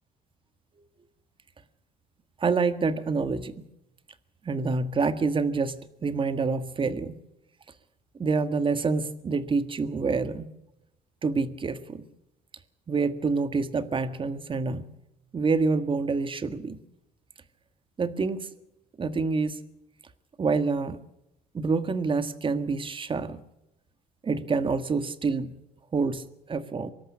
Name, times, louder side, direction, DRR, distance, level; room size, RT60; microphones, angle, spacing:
voice 1, 2.4-3.6 4.4-7.2 8.2-10.5 11.2-12.0 12.9-14.9 15.3-16.8 18.0-18.5 19.0-19.6 20.4-21.0 21.5-23.4 24.2-25.6 25.9-26.9, right 4 dB, 30° right, 11 dB, 1.7 m, -27 dB
24.5 x 13.0 x 8.6 m, 0.86 s
cardioid pair, 110°, 17 cm